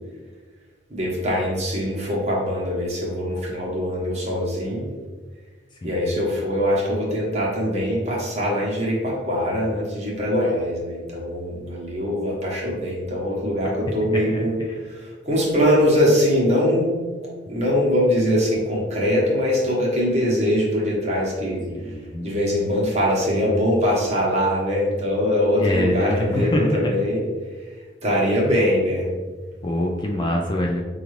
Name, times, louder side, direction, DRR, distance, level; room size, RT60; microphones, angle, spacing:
voice 1, 0.9-4.9 5.8-14.6 14.8-16.9 17.5-21.6 22.2-27.2 28.0-29.1, equal, 35° right, -4 dB, 1.1 m, -22 dB
voice 2, 21.7-22.4 25.6-26.9 29.6-30.8, left 1 dB, 25° left, 0 dB, 0.3 m, -24 dB
5.1 x 2.4 x 3.1 m, 1.4 s
head